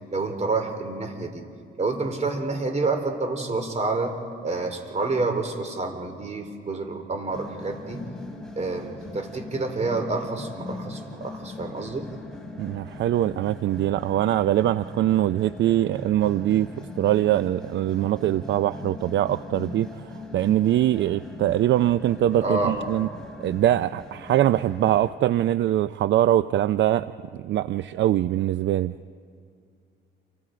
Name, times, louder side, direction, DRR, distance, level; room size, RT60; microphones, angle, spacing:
voice 1, 0.1-1.4 1.8-4.2 4.4-8.0 8.6-12.1 22.4-22.8 23.1-23.2, right 3 dB, 35° right, 6 dB, 3.4 m, -28 dB
sound 1, 7.3-25.1, left 2 dB, 5° left, 4.1 m, -40 dB
voice 2, 12.6-16.7 17.0-23.1 23.4-28.9, right 12 dB, 65° right, 14 dB, 0.5 m, -23 dB
28.5 x 25.0 x 5.1 m, 2.4 s
cardioid pair, 90°, 20 cm